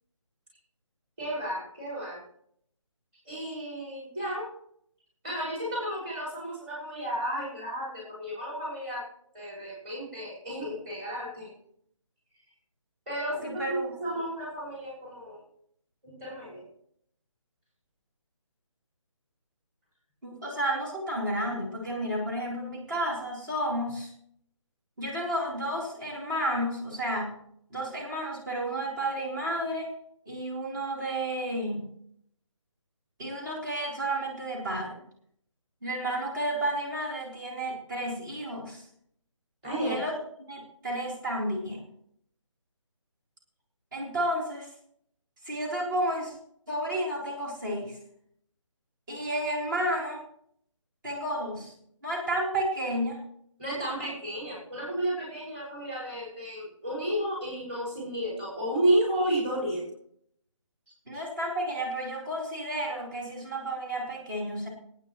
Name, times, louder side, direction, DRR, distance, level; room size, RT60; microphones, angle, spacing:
voice 1, 1.2-2.2 3.3-4.5 5.2-9.0 9.3-11.5 13.1-15.4 16.0-16.6 39.6-40.0 53.6-59.8 61.1-61.2, right 1 dB, 20° right, -5 dB, 5.8 m, -32 dB
voice 2, 13.4-13.9 20.2-24.1 25.0-27.4 27.7-29.9 30.3-31.9 33.2-35.0 35.8-38.8 39.8-40.2 40.5-41.8 43.9-44.7 45.4-46.3 46.7-48.0 49.1-50.2 51.0-51.7 52.0-53.2 61.1-64.7, right 1 dB, 35° right, -3 dB, 3.9 m, -31 dB
26.0 x 9.3 x 3.2 m, 0.68 s
figure-of-eight pair, 150°, 17 cm